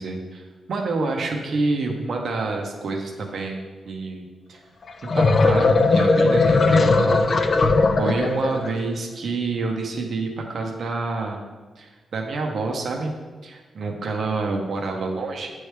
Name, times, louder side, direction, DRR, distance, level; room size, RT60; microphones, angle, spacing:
voice 1, 0.0-4.6 5.0-7.6 8.0-11.4 11.8-13.1 13.4-15.5, right 3 dB, 55° right, 2 dB, 0.7 m, -28 dB
sound 1, 4.9-8.8, left 3 dB, 40° left, 0.4 m, -18 dB
9.3 x 3.2 x 3.3 m, 1.3 s
wide cardioid pair, 140°, 0 cm